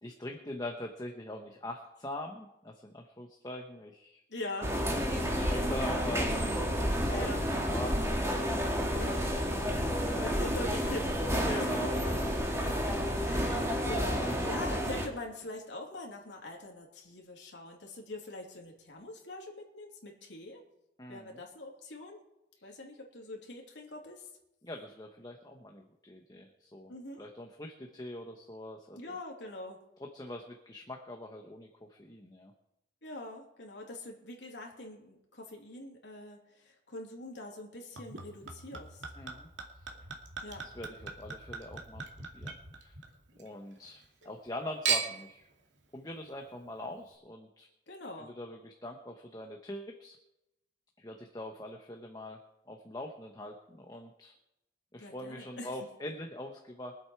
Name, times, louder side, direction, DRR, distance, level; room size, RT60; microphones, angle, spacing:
voice 1, 0.0-4.2 4.9-8.1 8.4-9.2 9.6-10.4 11.5-13.0 14.1-14.6 21.0-21.4 24.6-29.2 30.0-32.5 39.2-39.5 40.6-42.0 42.3-43.0 43.4-45.5 45.9-47.7 48.2-50.2 51.0-52.4 52.7-54.3 54.9-57.0, left 1 dB, 20° left, 2 dB, 1.2 m, -43 dB
voice 2, 4.3-4.8 7.1-7.4 8.9-9.2 10.2-12.4 13.2-20.6 21.1-22.2 22.6-24.3 26.9-27.2 28.9-29.8 33.0-39.0 40.4-40.7 47.9-48.3 55.0-55.7, left 2 dB, 75° left, 0 dB, 3.1 m, -43 dB
sound 1, 4.6-15.1, equal, 15° right, 2.0 m, -30 dB
Chink clink / Liquid, 38.0-43.5 43.8-44.5 44.9-45.4 46.1-46.2, right 6 dB, 90° right, 2.4 m, -38 dB
24.0 x 8.1 x 4.6 m, 0.88 s
head